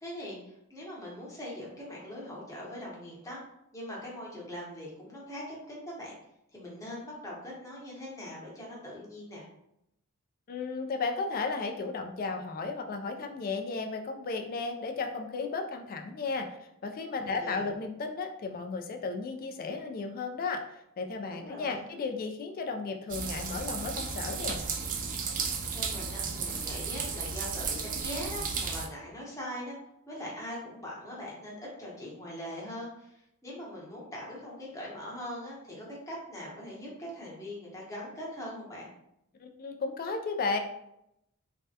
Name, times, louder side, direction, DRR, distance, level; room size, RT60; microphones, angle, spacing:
voice 1, 0.0-3.4 3.7-6.2 6.5-9.5 17.2-17.7 21.3-21.8 25.3-29.8 30.1-38.9, left 1 dB, 15° left, -5 dB, 0.9 m, -41 dB
voice 2, 10.5-16.5 16.8-20.6 21.0-24.6 39.4-40.6, left 4 dB, 40° left, 5 dB, 0.3 m, -34 dB
sound 1, 23.1-28.9, right 5 dB, 35° right, 0.3 m, -34 dB
3.3 x 2.2 x 2.7 m, 0.80 s
head